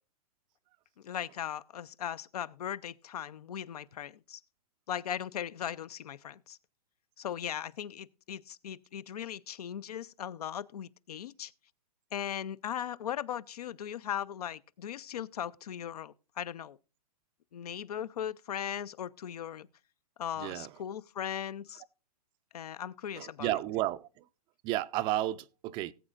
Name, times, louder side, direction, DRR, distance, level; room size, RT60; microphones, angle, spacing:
voice 1, 1.0-4.4 4.9-6.6 7.2-11.5 12.1-16.8 17.5-19.7 20.2-21.8 22.5-23.5, left 9 dB, 75° left, 0.6 m, -38 dB
voice 2, 23.2-24.1 24.6-25.9, right 15 dB, 25° right, 0.4 m, -32 dB
18.5 x 7.9 x 2.4 m
hypercardioid pair, 135°, 20 cm